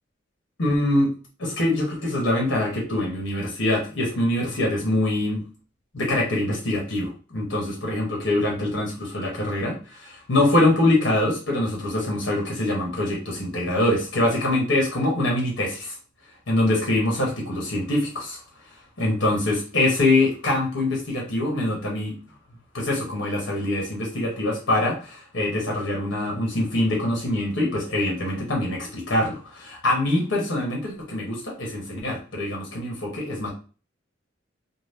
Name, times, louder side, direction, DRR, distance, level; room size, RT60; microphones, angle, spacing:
voice 1, 0.6-1.1 1.4-5.4 5.9-15.9 16.5-18.4 19.0-22.2 22.7-33.5, left 1 dB, 80° left, -2 dB, 1.0 m, -24 dB
2.7 x 2.0 x 3.3 m, 0.37 s
head